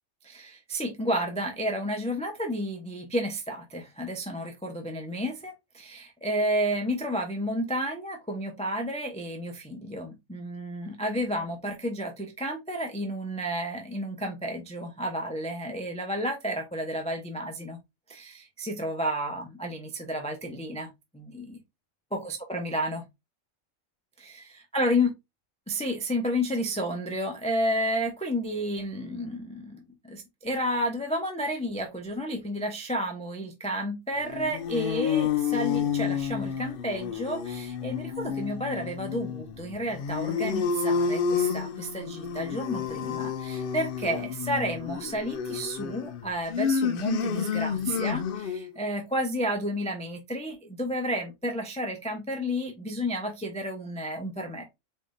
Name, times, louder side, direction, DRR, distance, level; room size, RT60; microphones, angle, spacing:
voice 1, 0.2-17.8 18.1-21.6 22.1-23.0 24.2-25.1 25.7-54.6, equal, 5° left, 0.5 m, -31 dB
sound 1, 34.2-48.7, left 7 dB, 65° left, 0.5 m, -30 dB
4.4 x 3.6 x 2.6 m
omnidirectional pair, 1.4 m